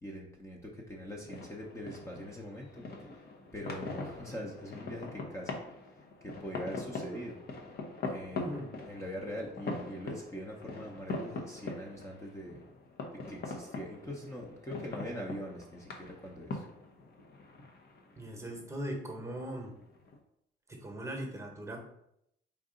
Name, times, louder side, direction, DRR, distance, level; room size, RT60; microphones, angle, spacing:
voice 1, 0.0-5.6 6.0-7.4 8.1-12.6 13.1-16.6, equal, 15° left, -2 dB, 0.8 m, -43 dB
sound 1, 0.9-20.2, left 3 dB, 50° left, 0.9 m, -43 dB
voice 2, 18.2-19.7 20.7-21.8, right 1 dB, 15° right, 1 dB, 1.1 m, -39 dB
4.6 x 2.6 x 3.8 m, 0.75 s
cardioid pair, 90°, 20 cm